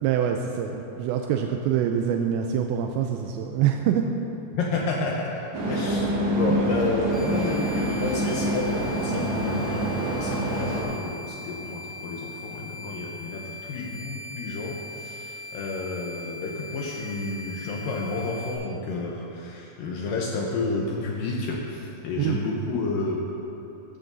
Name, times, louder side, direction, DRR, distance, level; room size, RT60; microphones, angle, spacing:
voice 1, 0.0-4.1 6.5-6.6 22.2-22.4, right 9 dB, 85° right, 3 dB, 2.8 m, -25 dB
voice 2, 4.5-23.2, left 3 dB, 90° left, -2 dB, 1.9 m, -30 dB
sound 1, 5.5-10.8, right 1 dB, 55° right, 2.4 m, -26 dB
sound 2, 7.1-18.5, left 2 dB, 60° left, 4.2 m, -40 dB
15.5 x 13.5 x 2.7 m, 2.8 s
omnidirectional pair, 5.2 m